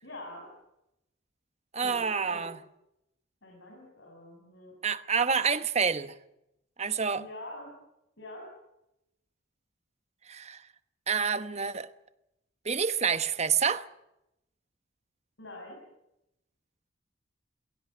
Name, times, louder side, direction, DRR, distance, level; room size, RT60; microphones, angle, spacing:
voice 1, 0.0-0.5 1.8-2.5 3.4-4.7 7.1-7.8 8.2-8.6 15.4-15.8, left 1 dB, 65° left, 7.5 m, -45 dB
voice 2, 1.7-2.6 4.8-6.1 6.8-7.2 10.3-10.6 11.1-11.9 12.6-13.9, right 6 dB, 35° right, 1.0 m, -28 dB
22.5 x 17.0 x 9.8 m
head